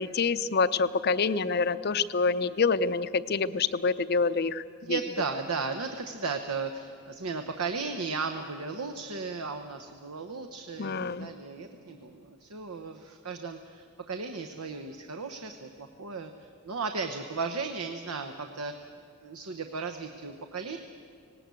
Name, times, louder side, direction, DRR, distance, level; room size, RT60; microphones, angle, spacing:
voice 1, 0.0-5.0 10.8-11.3, left 4 dB, 45° left, 14 dB, 0.5 m, -27 dB
voice 2, 4.8-18.9 19.2-20.8, right 4 dB, 80° right, 6 dB, 0.9 m, -35 dB
19.0 x 18.0 x 8.3 m, 2.3 s
head